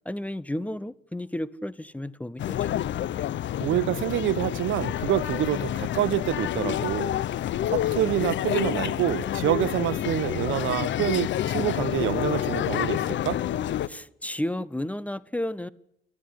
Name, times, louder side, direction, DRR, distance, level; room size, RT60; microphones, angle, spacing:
voice 1, 0.0-2.7 13.9-15.7, left 1 dB, 5° left, 0.9 m, -32 dB
sound 1, 2.4-13.9, left 11 dB, 70° left, 0.9 m, -28 dB
voice 2, 3.6-7.1 7.7-13.4, right 13 dB, 80° right, 1.1 m, -27 dB
29.5 x 13.5 x 10.0 m
cardioid pair, 90°, 20 cm